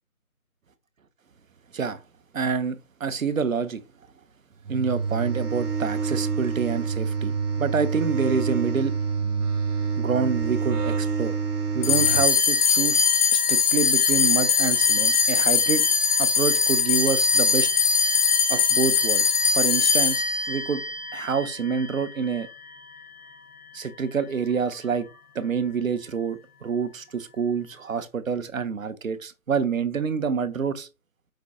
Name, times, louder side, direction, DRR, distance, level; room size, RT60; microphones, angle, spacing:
voice 1, 2.3-3.8 4.7-8.9 10.0-11.3 11.7-13.0 13.3-15.8 16.2-17.7 18.5-19.3 19.5-20.8 21.1-22.5 23.7-25.1 25.3-30.9, right 5 dB, 65° right, 0.6 m, -27 dB
sound 1, 4.7-12.3, right 5 dB, 85° right, 1.0 m, -27 dB
sound 2, 11.8-22.5, left 6 dB, 80° left, 1.2 m, -21 dB
5.1 x 2.1 x 3.6 m
figure-of-eight pair, 170°, 44 cm